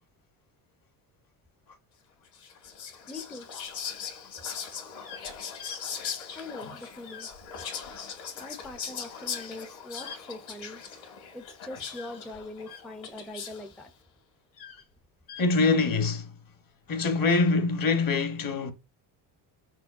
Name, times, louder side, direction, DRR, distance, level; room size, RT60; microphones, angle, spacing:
Whispering, 2.3-13.8, left 7 dB, 65° left, 1.9 m, -40 dB
voice 1, 3.1-3.5 6.3-7.3 8.3-10.8 11.3-13.9, left 2 dB, ahead, 0.4 m, -42 dB
sound 1, 3.2-3.7 5.0-5.2 5.6-5.8 7.0-7.3 7.5-7.7 9.2-9.6 10.0-10.2 11.9-12.8 14.5-14.8 15.3-15.5 16.9-17.1, left 7 dB, 90° left, 1.7 m, -45 dB
voice 2, 15.4-16.3 16.9-18.7, left 3 dB, 45° left, 1.0 m, -24 dB
6.2 x 2.2 x 2.4 m
supercardioid pair, 75°, 49 cm